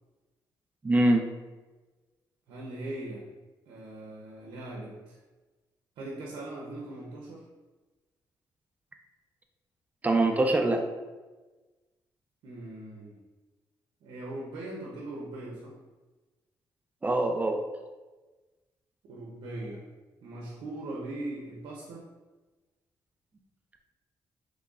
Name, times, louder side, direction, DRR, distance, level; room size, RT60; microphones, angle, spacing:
voice 1, 0.8-1.3 10.0-10.9 17.0-17.6, right 2 dB, 20° right, 4 dB, 0.4 m, -23 dB
voice 2, 2.5-3.3 3.7-5.2 6.0-7.4 12.4-13.2 14.0-15.8 19.0-19.8 20.2-22.1, right 1 dB, 90° right, -2 dB, 0.6 m, -40 dB
3.8 x 3.2 x 2.4 m, 1.2 s
cardioid pair, 105°, 8 cm